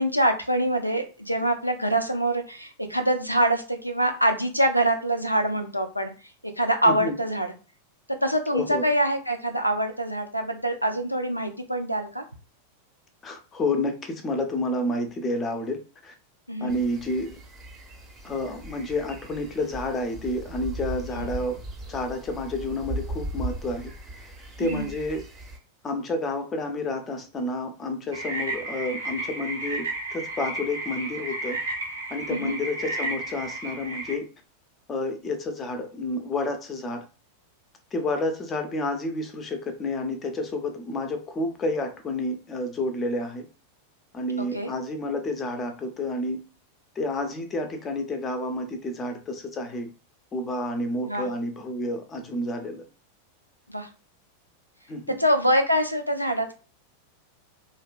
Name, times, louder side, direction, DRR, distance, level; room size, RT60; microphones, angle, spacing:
voice 1, 0.0-6.1 6.6-7.5 8.2-12.2 16.5-16.7 21.2-21.3 24.6-24.9 32.3-32.5 44.4-44.7 51.1-51.3 53.7-53.9 55.2-56.5, right 1 dB, 90° left, 6 dB, 0.3 m, -25 dB
voice 2, 6.9-7.2 8.5-8.8 13.2-16.1 16.6-17.3 18.2-21.6 21.9-23.9 24.2-24.3 24.6-25.2 25.8-31.6 32.1-34.3 34.9-37.1 37.9-43.5 44.1-46.4 47.0-49.9 50.3-52.8 54.9-55.2, left 1 dB, 20° left, 6 dB, 0.5 m, -30 dB
sound 1, 16.7-25.6, right 1 dB, 20° right, 0.6 m, -38 dB
sound 2, 28.1-34.1, right 2 dB, 75° right, 0.6 m, -33 dB
2.6 x 2.2 x 2.3 m, 0.34 s
figure-of-eight pair, 90°, 0 cm